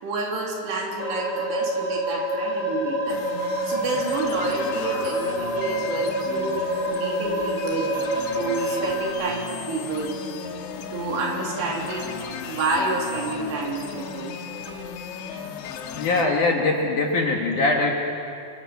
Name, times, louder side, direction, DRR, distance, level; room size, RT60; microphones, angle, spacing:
voice 1, 0.0-3.2 3.6-8.0 8.3-10.2 10.9-14.4, right 3 dB, 65° right, -1 dB, 5.3 m, -29 dB
sound 1, 1.0-9.1, right 1 dB, 20° left, 4.3 m, -27 dB
sound 2, 3.1-16.3, left 6 dB, 80° left, 3.6 m, -35 dB
voice 2, 15.9-17.9, left 3 dB, 55° left, 0 dB, 2.7 m, -22 dB
28.5 x 24.0 x 7.3 m, 2.6 s
omnidirectional pair, 5.3 m